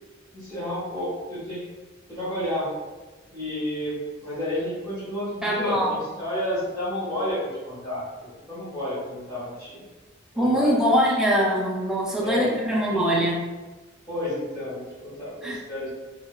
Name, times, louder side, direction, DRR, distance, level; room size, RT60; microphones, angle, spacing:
voice 1, 0.3-1.6 2.1-2.7 3.3-8.0 8.5-9.8 10.3-11.0 12.2-12.5 14.1-15.9, left 1 dB, 20° left, -11 dB, 0.8 m, -31 dB
voice 2, 5.4-6.0 10.4-13.4 15.4-15.6, equal, 5° right, -4 dB, 0.4 m, -23 dB
2.8 x 2.2 x 2.2 m, 1.2 s
head